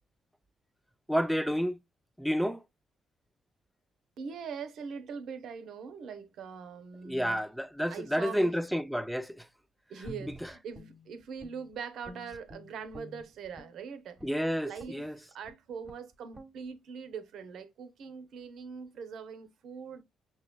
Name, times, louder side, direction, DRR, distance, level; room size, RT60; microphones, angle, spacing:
voice 1, 1.1-1.8 2.2-2.6 7.0-9.4 14.2-15.2, equal, ahead, 0.5 m, -30 dB
voice 2, 4.2-7.4 7.9-8.5 9.9-14.2 14.6-15.1 15.3-20.0, right 6 dB, 75° right, 0.8 m, -42 dB
Guitar, 10.0-11.8 12.0-13.8 14.2-14.4 14.8-15.1 15.4-15.6 15.8-16.1 16.3-16.5, right 1 dB, 20° right, 1.2 m, -48 dB
5.9 x 2.9 x 2.2 m
cardioid pair, 90°, 0 cm